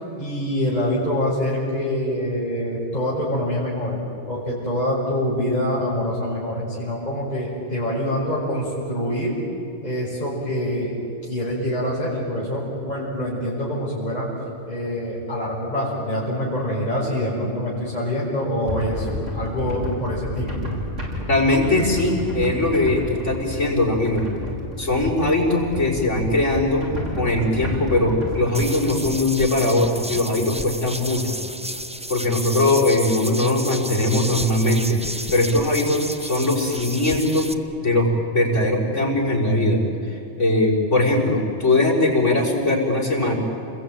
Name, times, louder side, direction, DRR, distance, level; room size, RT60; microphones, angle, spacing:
voice 1, 0.2-4.0 4.3-9.3 9.8-10.9 11.2-14.3 14.7-19.1 19.3-20.6, equal, 35° left, -6 dB, 6.0 m, -25 dB
sound 1, 18.6-28.7, left 1 dB, 85° right, 6.0 m, -31 dB
voice 2, 21.3-24.2 24.8-26.9 27.2-31.3 32.1-35.0 35.3-37.5 37.8-43.4, left 2 dB, 80° left, -2 dB, 5.4 m, -20 dB
sound 2, 28.5-37.5, right 1 dB, 5° right, 0.7 m, -32 dB
29.0 x 21.5 x 9.1 m, 2.8 s
omnidirectional pair, 1.2 m